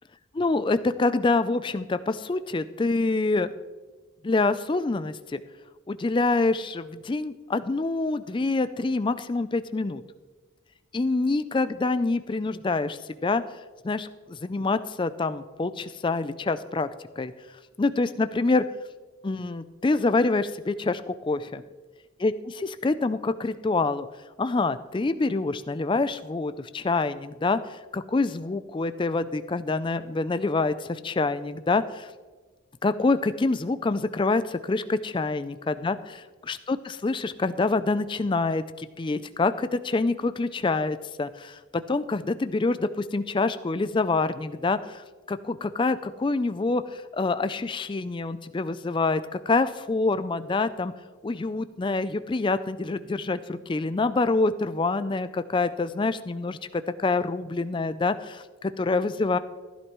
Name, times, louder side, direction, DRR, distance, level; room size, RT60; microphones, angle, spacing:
voice 1, 0.3-3.5 4.2-5.4 5.9-10.0 10.9-13.4 13.8-16.9 17.2-17.3 17.8-18.7 19.2-21.5 22.2-24.1 24.4-32.1 32.8-36.0 36.5-50.9 51.2-59.4, left 3 dB, 20° left, 12 dB, 0.3 m, -26 dB
15.5 x 11.0 x 3.0 m, 1.3 s
head